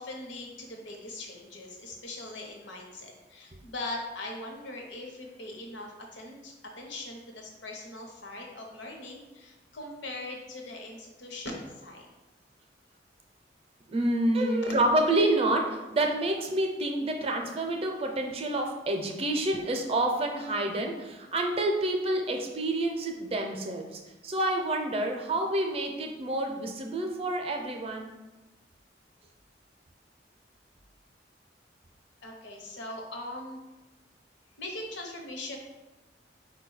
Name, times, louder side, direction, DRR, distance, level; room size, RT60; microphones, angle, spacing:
voice 1, 0.0-12.1 32.2-33.6 34.6-35.6, left 2 dB, 85° left, 1 dB, 0.8 m, -41 dB
voice 2, 13.9-28.1, right 1 dB, 35° right, 3 dB, 0.5 m, -28 dB
4.4 x 2.2 x 4.7 m, 1.1 s
head